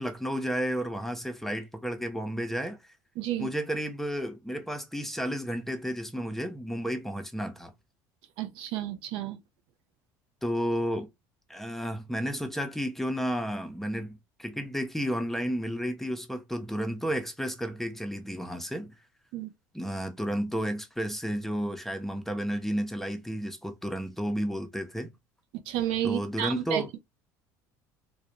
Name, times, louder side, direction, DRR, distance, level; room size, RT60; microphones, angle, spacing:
voice 1, 0.0-2.8 3.4-7.7 10.4-11.1 11.5-18.9 19.7-25.1 26.0-27.0, equal, 5° left, 0.6 m, -32 dB
voice 2, 3.2-3.5 8.4-9.4 19.3-19.5 25.7-27.0, right 12 dB, 70° right, 0.4 m, -31 dB
2.3 x 2.2 x 2.8 m
hypercardioid pair, 80°, 9 cm